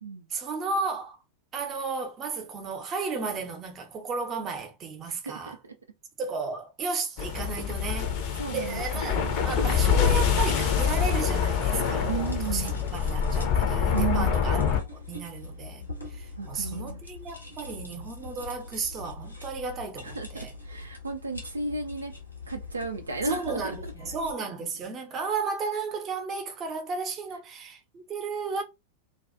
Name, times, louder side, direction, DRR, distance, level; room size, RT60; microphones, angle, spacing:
voice 1, 0.3-1.2 1.5-5.6 6.2-8.2 8.5-14.6 14.9-20.5 23.3-28.6, right 4 dB, 30° right, 0.6 m, -34 dB
voice 2, 5.3-5.7 8.4-9.3 12.1-12.7 13.9-14.4 16.4-17.0 20.0-22.1 22.5-23.9, right 4 dB, 75° right, 0.3 m, -34 dB
sound 1, 7.2-14.8, left 7 dB, 45° left, 0.5 m, -25 dB
sound 2, 12.2-24.3, left 3 dB, 85° left, 0.7 m, -42 dB
2.3 x 2.2 x 2.5 m
figure-of-eight pair, 90°, 0 cm